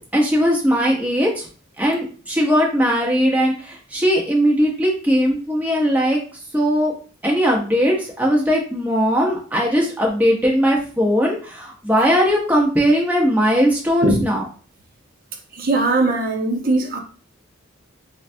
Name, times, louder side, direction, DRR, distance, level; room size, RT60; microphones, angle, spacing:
voice 1, 0.1-1.5 1.8-6.2 6.5-6.9 7.2-14.4, equal, 10° right, 0.9 m, -19 dB
voice 2, 15.6-17.0, right 2 dB, 45° right, 0.7 m, -19 dB
4.8 x 2.2 x 2.6 m
head